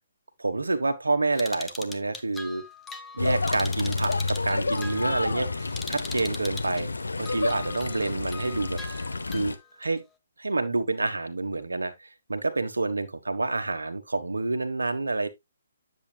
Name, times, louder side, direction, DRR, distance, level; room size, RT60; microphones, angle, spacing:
voice 1, 0.4-2.6 3.1-6.9 7.2-8.8 9.3-10.0 10.4-15.3, right 3 dB, 70° right, 1.3 m, -28 dB
sound 1, 1.3-6.8 7.2-9.9, left 3 dB, 10° left, 0.9 m, -42 dB
sound 2, 3.2-9.6, left 3 dB, 70° left, 0.9 m, -30 dB
10.0 x 7.6 x 2.3 m
figure-of-eight pair, 135°, 0 cm